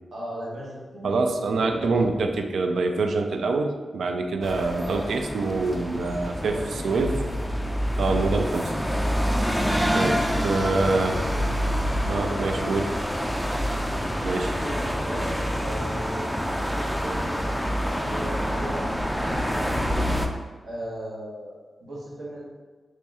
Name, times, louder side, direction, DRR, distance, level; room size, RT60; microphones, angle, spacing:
voice 1, 0.1-1.6 4.7-5.0 6.5-7.1 8.1-8.6 10.6-11.4 12.1-13.0 14.6-17.3 17.8-18.9 19.3-19.7 20.6-22.4, right 1 dB, 65° right, -6 dB, 1.1 m, -37 dB
voice 2, 1.0-6.6 6.8-7.2 8.0-8.7 9.9-11.1 12.1-12.8 14.2-14.6, right 3 dB, 85° right, 5 dB, 0.3 m, -25 dB
sound 1, 4.4-20.3, equal, ahead, 0.3 m, -27 dB
Bus, 6.0-12.2, left 2 dB, 80° left, 0.5 m, -38 dB
3.1 x 2.9 x 3.5 m, 1.4 s
cardioid pair, 80°, 0 cm